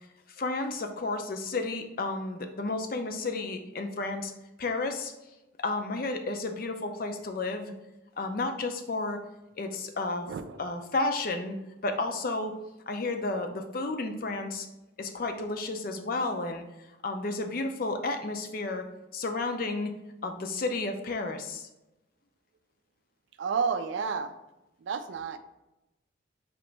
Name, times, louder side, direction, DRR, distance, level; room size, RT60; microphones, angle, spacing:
voice 1, 0.4-4.3 4.6-5.1 5.6-7.7 8.2-9.2 9.5-10.3 10.6-11.6 11.8-12.6 12.9-14.7 15.0-18.9 19.1-19.9 20.2-21.7, left 3 dB, 50° left, 6 dB, 0.5 m, -32 dB
voice 2, 10.3-10.6 23.4-24.3 24.8-25.4, right 5 dB, 70° right, 10 dB, 0.4 m, -31 dB
5.1 x 2.9 x 3.3 m, 0.96 s
head